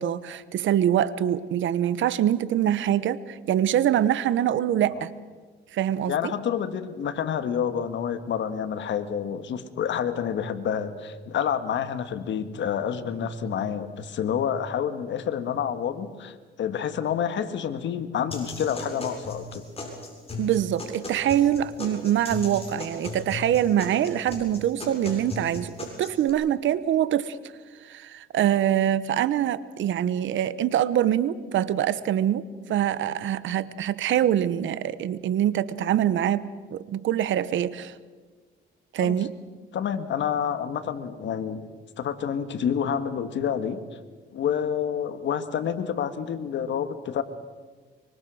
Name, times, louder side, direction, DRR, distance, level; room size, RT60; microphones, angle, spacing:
voice 1, 0.0-5.1 5.7-6.1 20.4-27.4 27.8-37.9 38.9-39.3, right 11 dB, 75° right, 16 dB, 1.1 m, -24 dB
voice 2, 6.1-19.6 39.0-39.2 39.7-41.7 42.0-43.8 44.3-47.2, left 8 dB, 70° left, 10 dB, 1.7 m, -28 dB
sound 1, 18.3-26.3, left 3 dB, 30° left, 7.6 m, -37 dB
24.5 x 24.5 x 6.4 m, 1.4 s
cardioid pair, 90°, 20 cm